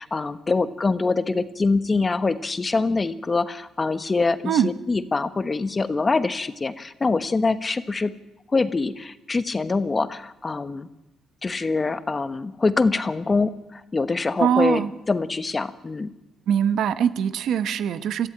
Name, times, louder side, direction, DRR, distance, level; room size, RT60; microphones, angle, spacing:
voice 1, 0.0-8.1 8.5-10.9 11.4-16.1, left 3 dB, 30° left, 12 dB, 1.2 m, -24 dB
voice 2, 14.4-14.9 16.5-18.3, right 8 dB, 75° right, 13 dB, 1.0 m, -22 dB
22.5 x 14.0 x 8.9 m, 0.93 s
cardioid pair, 90°, 0 cm